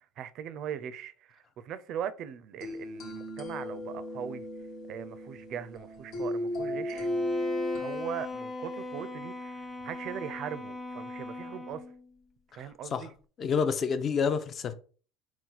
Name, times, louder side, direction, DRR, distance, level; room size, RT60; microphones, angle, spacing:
voice 1, 0.2-4.4 4.9-7.1 7.8-11.8 12.5-13.1, right 9 dB, 55° right, 0.4 m, -40 dB
sound 1, 2.6-7.8, left 1 dB, 65° left, 1.3 m, -35 dB
Bowed string instrument, 6.9-12.0, left 4 dB, 15° left, 0.9 m, -39 dB
voice 2, 12.5-13.1 13.4-14.7, left 6 dB, 40° left, 0.5 m, -29 dB
4.1 x 2.3 x 3.9 m
supercardioid pair, 95°, 0 cm